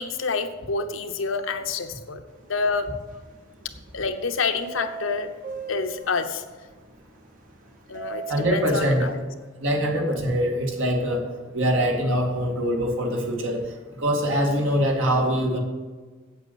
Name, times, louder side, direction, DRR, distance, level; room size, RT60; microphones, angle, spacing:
voice 1, 0.0-2.2 2.5-2.9 3.9-5.3 5.7-6.4 7.9-9.2, left 4 dB, 70° left, 7 dB, 0.9 m, -27 dB
sound 1, 2.5-2.8 3.1-3.9 4.6-9.2, right 5 dB, 40° right, 1.1 m, -38 dB
voice 2, 8.3-9.1 9.6-11.3 11.5-13.6 14.0-15.6, equal, 70° right, 1 dB, 2.3 m, -23 dB
8.0 x 8.0 x 8.3 m, 1.3 s
head